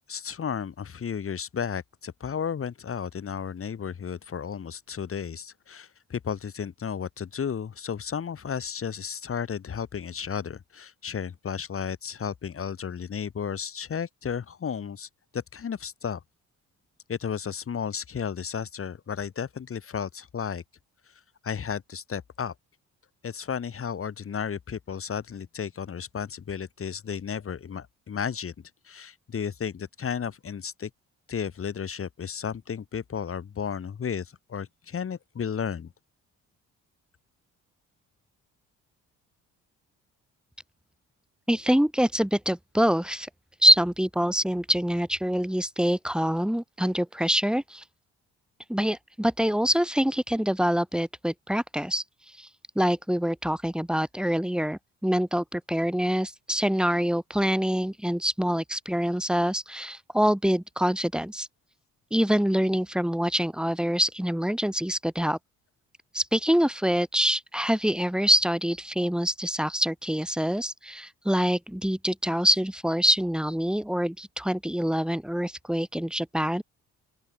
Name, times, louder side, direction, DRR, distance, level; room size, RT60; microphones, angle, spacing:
voice 1, 0.1-16.2 17.1-20.6 21.4-22.5 23.2-28.5 28.9-30.9 31.3-35.9, left 7 dB, 45° left, 4.0 m, -33 dB
voice 2, 41.5-43.3 43.6-47.8 48.7-52.0 52.4-52.5 52.7-61.5 62.1-65.4 66.1-76.6, equal, 5° right, 3.4 m, -25 dB
open air
cardioid pair, 90°, 30 cm